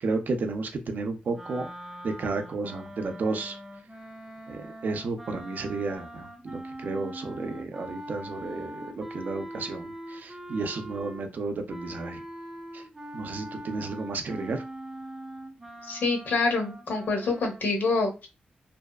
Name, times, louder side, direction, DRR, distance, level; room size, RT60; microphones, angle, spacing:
voice 1, 0.0-1.7 2.0-3.6 4.5-12.2 12.7-12.8 13.1-14.6, right 3 dB, 60° right, 6 dB, 0.5 m, -32 dB
sound 1, 1.3-11.3 11.7-17.6, right 1 dB, 15° right, 0.6 m, -42 dB
voice 2, 15.8-18.3, left 3 dB, 70° left, 1 dB, 0.9 m, -26 dB
2.6 x 2.2 x 2.3 m, 0.28 s
cardioid pair, 75°, 3 cm